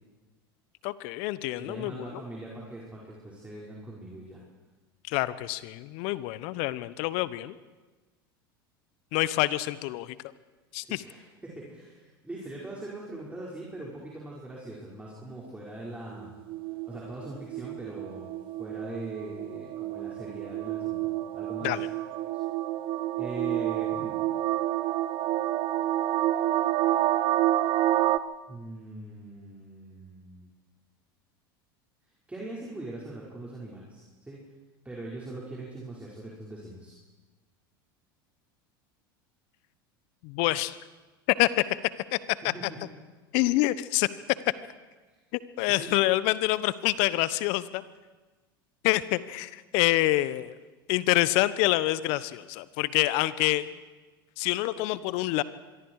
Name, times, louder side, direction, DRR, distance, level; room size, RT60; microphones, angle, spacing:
voice 1, 0.8-2.1 5.1-7.5 9.1-10.2 10.7-11.0 21.6-21.9 40.2-40.7 41.4-41.6 42.1-42.2 43.3-44.1 45.3-47.8 48.8-50.6 50.9-53.7 54.4-55.4, left 17 dB, 60° left, 17 dB, 1.1 m, -26 dB
voice 2, 1.6-4.4 10.8-16.4 16.9-18.3 18.6-21.8 23.2-24.2 28.5-30.5 32.3-34.5 34.8-37.0 42.4-42.9 45.1-45.2 45.7-45.9, right 2 dB, 10° right, -4 dB, 5.6 m, -41 dB
sound 1, 16.2-28.2, right 14 dB, 45° right, 0.9 m, -29 dB
25.5 x 22.5 x 4.9 m, 1.2 s
hypercardioid pair, 85°, 12 cm